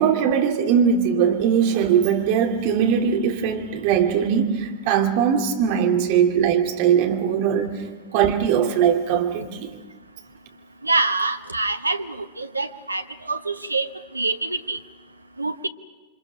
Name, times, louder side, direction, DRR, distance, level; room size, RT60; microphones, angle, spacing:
voice 1, 0.0-7.9 8.1-9.7, right 8 dB, 45° right, 2.5 m, -20 dB
voice 2, 10.8-14.8 15.4-15.7, right 3 dB, 85° right, 1.0 m, -25 dB
29.0 x 24.5 x 5.6 m
figure-of-eight pair, 90°, 0 cm